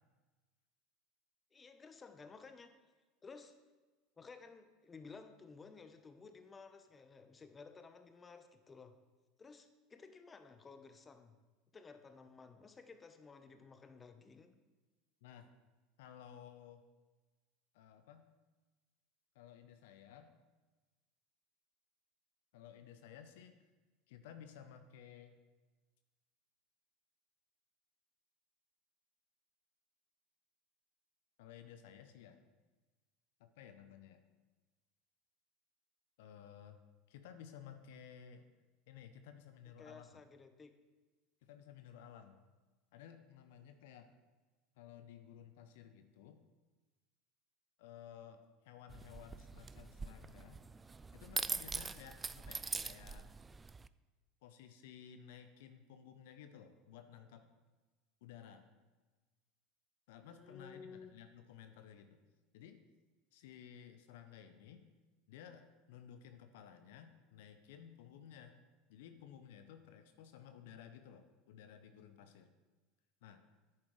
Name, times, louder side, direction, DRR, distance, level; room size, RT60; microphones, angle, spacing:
voice 1, 1.5-2.8 3.2-3.5 4.2-8.9 9.4-11.4 11.7-14.5 39.8-40.7 52.3-52.5 60.3-61.1, left 4 dB, 25° left, 9 dB, 0.8 m, -55 dB
voice 2, 16.0-16.8 17.7-18.2 19.3-20.3 22.5-23.6 24.1-25.4 31.4-32.4 33.4-34.2 36.2-36.8 37.1-38.5 38.9-40.2 41.4-42.4 42.9-44.1 44.8-46.4 47.8-50.6 51.1-53.3 54.4-57.5 58.2-58.6 60.1-62.2 62.5-62.8 63.3-64.8 65.3-68.6 68.9-72.5 73.2-73.4, left 9 dB, 70° left, 9 dB, 0.7 m, -55 dB
sound 1, 48.9-53.9, right 4 dB, 20° right, 0.3 m, -43 dB
10.5 x 9.0 x 3.2 m, 1.2 s
hypercardioid pair, 80°, 0 cm